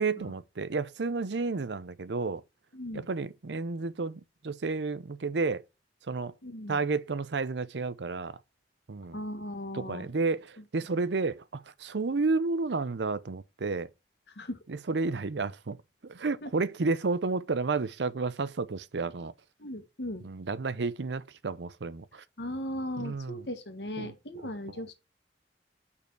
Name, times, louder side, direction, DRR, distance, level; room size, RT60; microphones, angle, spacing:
voice 1, 0.0-2.4 2.9-5.6 6.1-6.3 6.7-8.4 8.9-9.2 9.7-13.9 14.7-15.8 16.0-19.3 20.2-22.2 23.0-23.5 24.0-24.8, right 3 dB, 75° right, 0.6 m, -31 dB
voice 2, 2.7-3.1 6.4-6.8 9.1-10.1 14.3-14.6 16.4-16.5 19.6-20.2 22.4-24.9, left 1 dB, 70° left, 1.6 m, -37 dB
6.7 x 5.7 x 4.6 m
head